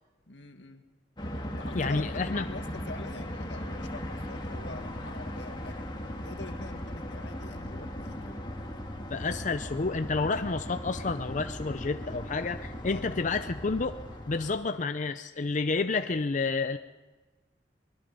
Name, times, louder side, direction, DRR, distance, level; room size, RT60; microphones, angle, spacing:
voice 1, 0.3-0.8 1.6-5.9 6.2-8.6 12.9-13.1, left 2 dB, 90° left, 6 dB, 1.9 m, -45 dB
sound 1, 1.2-14.5, left 1 dB, 25° left, 1.9 m, -38 dB
voice 2, 1.7-2.4 9.1-14.0 14.3-16.8, left 4 dB, 45° left, 9 dB, 0.6 m, -30 dB
24.0 x 20.5 x 5.4 m, 1.2 s
head